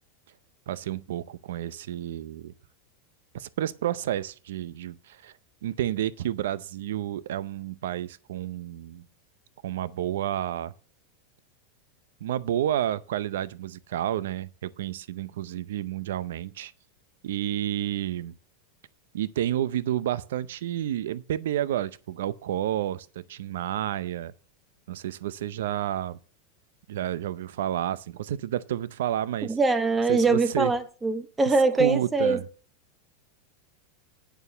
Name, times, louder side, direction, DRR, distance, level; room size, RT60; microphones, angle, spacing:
voice 1, 0.7-2.5 3.3-5.3 5.6-9.0 9.6-10.7 12.2-16.7 17.2-18.3 19.1-24.3 24.9-26.2 26.9-29.6 30.1-30.7 31.8-32.5, right 11 dB, 80° right, 0.6 m, -30 dB
voice 2, 29.5-32.4, right 3 dB, 10° right, 0.8 m, -23 dB
9.2 x 6.7 x 6.7 m
supercardioid pair, 175°, 0 cm